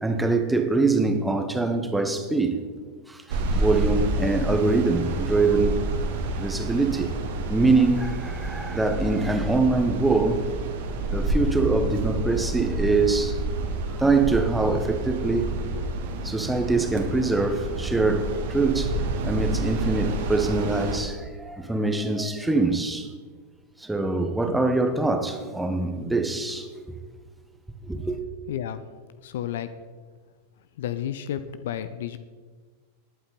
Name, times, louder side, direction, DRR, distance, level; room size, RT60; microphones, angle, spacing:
voice 1, 0.0-2.6 3.1-5.8 6.4-7.1 7.5-10.6 11.1-13.4 13.9-15.5 16.2-18.9 19.2-23.1 23.8-27.0 27.8-28.2, right 3 dB, 5° right, 1.3 m, -24 dB
sound 1, 3.3-21.0, right 2 dB, 55° right, 1.9 m, -29 dB
voice 2, 28.5-28.8 29.2-29.7 30.8-32.2, left 10 dB, 55° left, 0.6 m, -31 dB
20.0 x 8.3 x 4.2 m
figure-of-eight pair, 90°, 0 cm